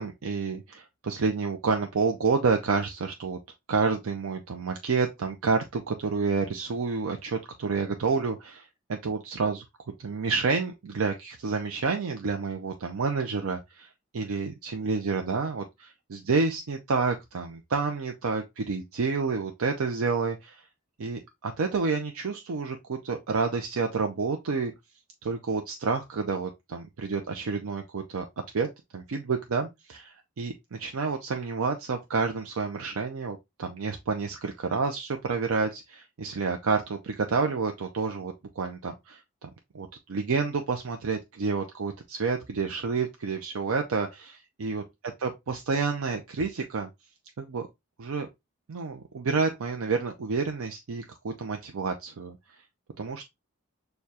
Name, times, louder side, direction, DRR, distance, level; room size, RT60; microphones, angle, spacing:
voice 1, 0.0-3.4 3.7-9.6 10.0-20.6 21.0-24.7 25.2-28.2 28.5-39.5 39.7-44.8 45.2-46.9 47.4-47.7 48.0-48.3 48.7-52.4 53.0-53.3, right 4 dB, 80° right, 0.5 m, -29 dB
6.5 x 2.2 x 2.7 m
head